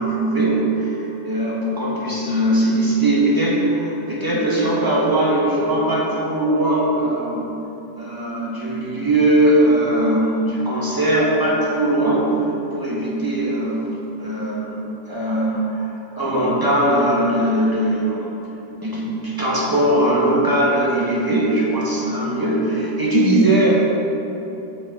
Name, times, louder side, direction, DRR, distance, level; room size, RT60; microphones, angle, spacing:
voice 1, 0.0-7.5 7.9-12.3 12.7-13.8 14.2-18.3 18.8-23.7, right 1 dB, 15° right, -5 dB, 1.0 m, -20 dB
6.0 x 5.4 x 4.6 m, 3.0 s
omnidirectional pair, 1.8 m